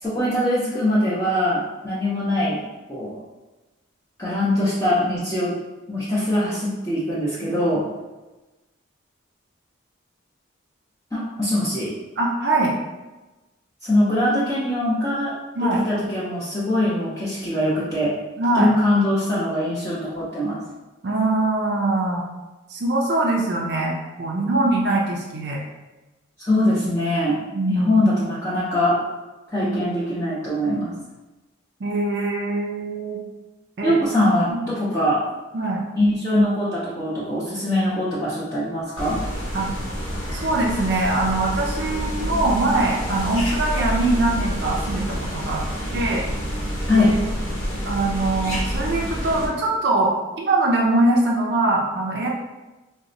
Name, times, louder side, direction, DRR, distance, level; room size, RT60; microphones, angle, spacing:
voice 1, 0.0-2.6 2.9-3.2 4.2-5.5 5.9-7.8 11.1-11.9 13.8-15.3 15.9-18.1 18.5-20.6 26.4-27.4 27.7-29.0 29.5-30.9 33.8-35.2 36.0-39.2 46.9-47.1, left 1 dB, 15° left, -10 dB, 0.5 m, -22 dB
voice 2, 12.2-12.7 15.5-15.8 18.4-18.7 21.0-22.2 22.7-25.6 27.5-28.0 29.6-29.9 31.8-33.2 33.8-34.0 34.5-34.6 35.5-35.8 39.5-39.7 40.3-45.6 45.9-46.3 46.9-47.2 47.9-52.3, right 2 dB, 55° right, -2 dB, 0.4 m, -22 dB
sound 1, 39.0-49.5, equal, 75° left, 0.9 m, -28 dB
3.9 x 2.1 x 2.6 m, 1.1 s
head